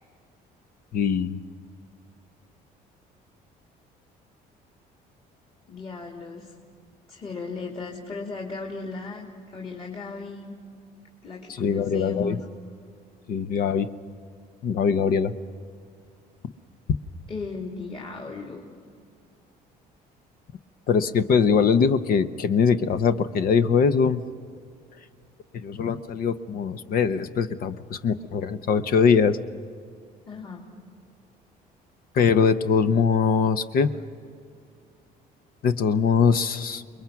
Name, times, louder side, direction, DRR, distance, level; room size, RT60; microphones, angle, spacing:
voice 1, 0.9-1.4 11.5-12.4 13.3-13.9 14.6-15.3 20.9-24.2 25.5-29.4 32.1-33.9 35.6-36.8, left 6 dB, 60° left, 10 dB, 0.9 m, -22 dB
voice 2, 5.7-6.5 7.1-10.5 11.2-12.4 17.3-18.8 30.2-30.6, left 4 dB, 35° left, 0 dB, 2.8 m, -36 dB
29.0 x 22.0 x 5.9 m, 2.3 s
cardioid pair, 110°, 17 cm